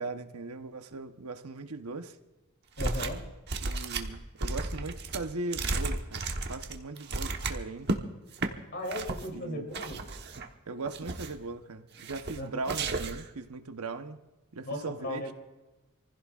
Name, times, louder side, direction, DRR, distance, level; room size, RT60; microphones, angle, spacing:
voice 1, 0.0-2.2 3.6-8.0 9.3-9.7 10.7-14.2 14.5-15.3, right 3 dB, 85° right, 1.0 m, -39 dB
voice 2, 2.8-3.2 8.7-10.0 12.3-12.5 14.6-15.3, left 1 dB, 50° left, 3.2 m, -36 dB
sound 1, 2.8-3.2 3.5-8.0 8.3-8.5 8.9-9.3 9.7-10.5 10.8-11.4 12.0-12.4 12.6-13.3, right 3 dB, 50° right, 1.2 m, -33 dB
27.5 x 15.5 x 2.5 m
head